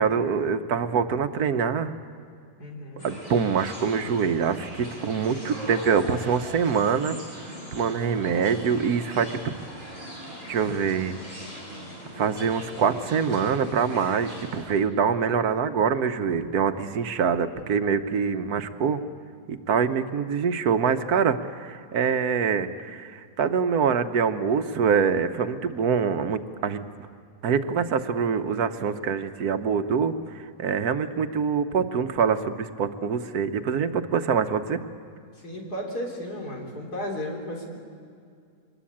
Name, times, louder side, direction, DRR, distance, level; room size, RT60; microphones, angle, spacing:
voice 1, 0.0-1.9 3.0-7.2 7.7-9.5 10.5-11.2 12.2-19.0 19.5-26.8 27.4-30.1 30.6-34.8, right 6 dB, 75° right, 9 dB, 1.5 m, -25 dB
voice 2, 2.6-3.1 17.6-17.7 35.4-37.7, equal, 85° left, 0 dB, 4.5 m, -34 dB
sound 1, 3.0-14.6, equal, 40° left, 7.6 m, -40 dB
23.5 x 20.5 x 8.6 m, 2.3 s
omnidirectional pair, 1.6 m